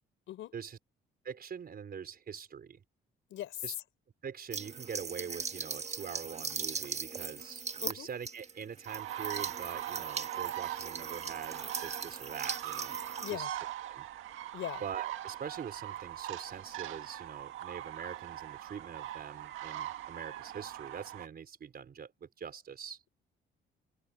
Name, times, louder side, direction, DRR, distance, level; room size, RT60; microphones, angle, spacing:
voice 1, 1.2-2.8 3.6-3.7 4.2-13.0 13.3-13.4 13.8-14.0 14.8-23.0, right 7 dB, 50° right, 4.8 m, -44 dB
voice 2, 3.3-3.8 7.8-8.1 13.2-13.5 14.5-14.8, left 13 dB, 80° left, 4.6 m, -39 dB
sound 1, 4.5-13.3, right 5 dB, 35° right, 1.6 m, -40 dB
sound 2, 8.9-21.3, right 13 dB, 90° right, 1.7 m, -41 dB
cardioid pair, 90°, 20 cm